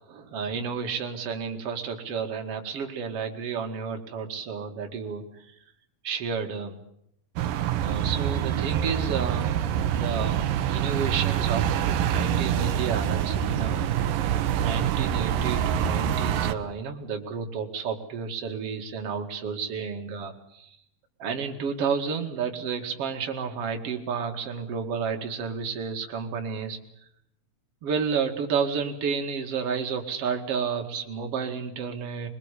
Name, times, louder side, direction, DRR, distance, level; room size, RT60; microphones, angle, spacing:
voice 1, 0.1-5.4 6.0-6.8 7.8-9.6 9.8-13.9 14.6-20.7 21.2-26.8 27.8-32.3, right 6 dB, 45° right, 4 dB, 3.0 m, -31 dB
sound 1, 7.4-16.5, right 10 dB, 80° right, 2.8 m, -26 dB
23.0 x 22.0 x 8.4 m, 0.75 s
omnidirectional pair, 4.0 m